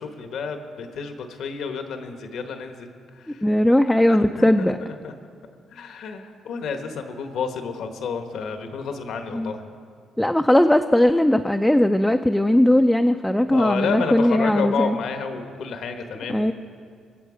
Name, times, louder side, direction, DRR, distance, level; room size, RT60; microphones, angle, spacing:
voice 1, 0.0-2.9 3.2-3.5 4.1-5.1 5.7-9.6 13.5-16.5, left 5 dB, 75° left, 6 dB, 1.2 m, -30 dB
voice 2, 3.4-4.8 9.3-9.5 10.2-15.0 16.3-16.5, left 1 dB, 5° left, 5 dB, 0.4 m, -18 dB
22.0 x 7.7 x 5.0 m, 2.2 s
cardioid pair, 90°, 0 cm